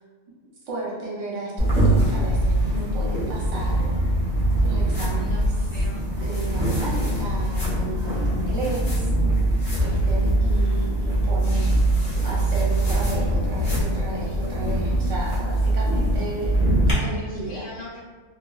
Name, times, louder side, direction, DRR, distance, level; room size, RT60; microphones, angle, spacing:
voice 1, 0.6-3.9 4.6-5.5 6.2-9.1 9.8-11.8 12.2-17.6, right 1 dB, 60° right, -5 dB, 1.0 m, -33 dB
sound 1, 1.6-16.9, right 1 dB, 40° left, 0.6 m, -22 dB
voice 2, 5.0-6.0 16.9-18.0, left 2 dB, 70° left, -8 dB, 1.2 m, -42 dB
2.9 x 2.3 x 2.3 m, 1.4 s
omnidirectional pair, 1.6 m